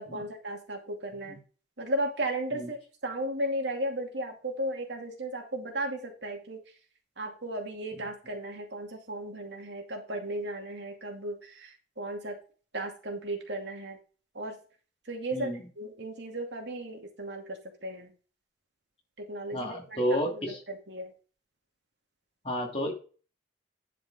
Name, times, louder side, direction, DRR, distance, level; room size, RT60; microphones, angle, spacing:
voice 1, 0.0-1.4 1.8-2.8 3.0-6.6 7.2-12.4 12.7-14.0 14.3-14.6 15.1-18.1 19.3-20.0 20.4-21.1, right 1 dB, 70° right, 2 dB, 2.5 m, -35 dB
voice 2, 15.3-15.7 19.5-20.6 22.4-22.9, equal, 30° left, 0 dB, 2.7 m, -31 dB
10.5 x 5.1 x 4.9 m, 0.37 s
head